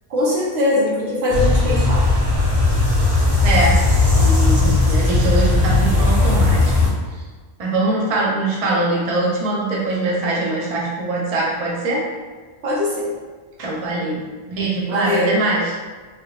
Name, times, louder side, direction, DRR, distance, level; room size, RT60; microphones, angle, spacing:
voice 1, 0.1-2.0 12.6-13.1 14.9-15.4, left 1 dB, 75° right, -6 dB, 1.2 m, -21 dB
sound 1, 1.3-6.9, left 3 dB, 15° right, 1.3 m, -16 dB
voice 2, 3.4-3.8 4.1-7.2 7.6-12.0 13.6-15.6, right 2 dB, 40° right, -4 dB, 0.6 m, -22 dB
3.3 x 3.0 x 2.4 m, 1.4 s
omnidirectional pair, 1.1 m